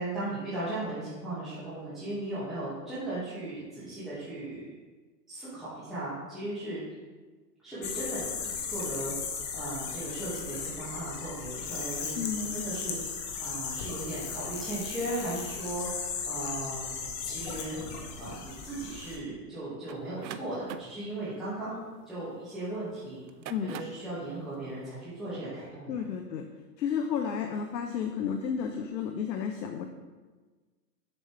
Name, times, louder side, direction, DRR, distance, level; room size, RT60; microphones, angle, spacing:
voice 1, 0.0-4.6 5.3-6.8 7.6-16.9 17.2-17.8 18.2-26.0, right 1 dB, ahead, -14 dB, 1.8 m, -37 dB
sound 1, 7.8-19.2, left 6 dB, 40° left, 1.0 m, -36 dB
voice 2, 12.2-12.6 23.5-23.7 25.9-26.4 26.8-29.9, left 7 dB, 85° left, 5 dB, 0.9 m, -32 dB
sound 2, 19.9-22.6 23.2-24.1, right 10 dB, 85° right, 0.6 m, -44 dB
7.1 x 6.9 x 3.3 m, 1.3 s
hypercardioid pair, 145°, 50 cm